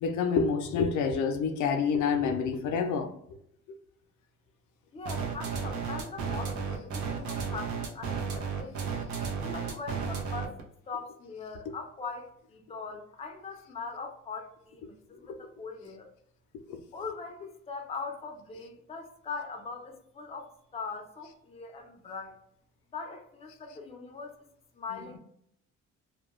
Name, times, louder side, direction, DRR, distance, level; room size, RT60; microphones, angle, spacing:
voice 1, 0.0-3.1, left 5 dB, 75° left, 0.5 m, -27 dB
voice 2, 4.9-8.9 9.4-16.1 16.9-22.4 22.9-24.5 24.7-25.2, left 4 dB, 20° left, 0.5 m, -41 dB
sound 1, 5.1-10.6, right 6 dB, 75° right, 0.6 m, -33 dB
2.2 x 2.1 x 3.0 m
cardioid pair, 90°, 30 cm